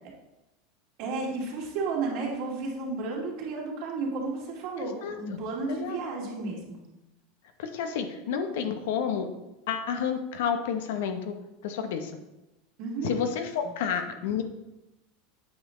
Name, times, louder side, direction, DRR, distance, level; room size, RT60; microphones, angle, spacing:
voice 1, 1.0-6.8 12.8-13.1, right 3 dB, 60° right, -2 dB, 2.4 m, -32 dB
voice 2, 4.8-5.4 5.7-6.0 7.6-9.3 9.7-11.4 11.6-12.1 13.0-14.4, left 7 dB, 75° left, 7 dB, 0.9 m, -30 dB
8.5 x 5.2 x 3.8 m, 0.96 s
supercardioid pair, 115°, 0 cm